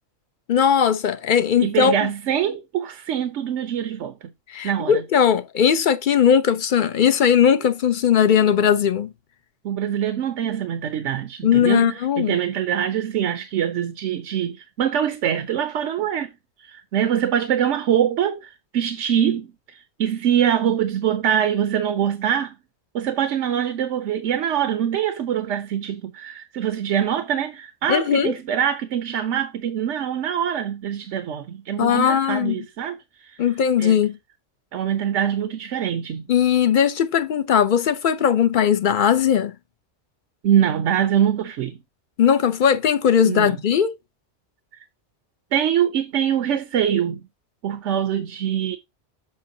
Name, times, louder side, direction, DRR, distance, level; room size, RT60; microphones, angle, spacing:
voice 1, 0.5-2.1 4.5-9.1 11.4-12.4 27.9-28.3 31.8-32.6 33.4-34.2 36.3-39.5 42.2-43.9, left 8 dB, 50° left, 0.7 m, -19 dB
voice 2, 1.6-4.3 4.6-5.0 9.6-16.3 16.6-22.6 22.9-33.4 33.8-34.0 34.7-36.2 40.4-41.8 43.3-43.5 45.5-47.2 47.6-48.8, right 9 dB, 80° right, 1.0 m, -24 dB
7.5 x 5.7 x 2.7 m
omnidirectional pair, 1.2 m